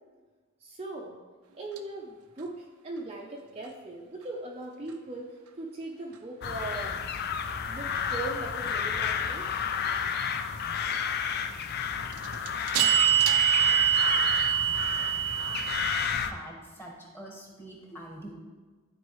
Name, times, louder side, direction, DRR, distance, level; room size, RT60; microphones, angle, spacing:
voice 1, 0.6-1.2 1.5-7.0 7.7-9.5, right 2 dB, 25° right, -1 dB, 0.6 m, -39 dB
sound 1, 1.8-1.9 12.1-16.1, right 10 dB, 85° right, 0.6 m, -25 dB
sound 2, 6.4-16.3, left 7 dB, 45° left, 0.4 m, -31 dB
voice 2, 16.2-18.3, right 1 dB, 10° left, -2 dB, 1.3 m, -45 dB
12.5 x 4.5 x 3.1 m, 1.4 s
head